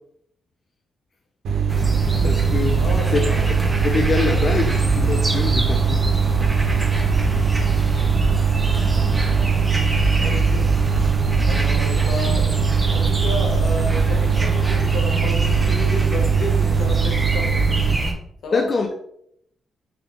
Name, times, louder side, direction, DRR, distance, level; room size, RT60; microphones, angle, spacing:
sound 1, 1.4-18.0, right 7 dB, 90° right, 1.0 m, -21 dB
sound 2, 1.7-18.1, right 2 dB, 10° right, 0.8 m, -24 dB
voice 1, 2.2-2.8 3.1-3.5 3.8-6.0 18.5-18.9, left 4 dB, 40° left, 4 dB, 0.4 m, -24 dB
voice 2, 2.8-3.4 10.2-10.7 11.4-12.5 12.9-17.7 18.4-18.7, left 2 dB, 70° left, 2 dB, 1.0 m, -31 dB
5.8 x 2.4 x 3.5 m, 0.71 s
cardioid pair, 135°, 0 cm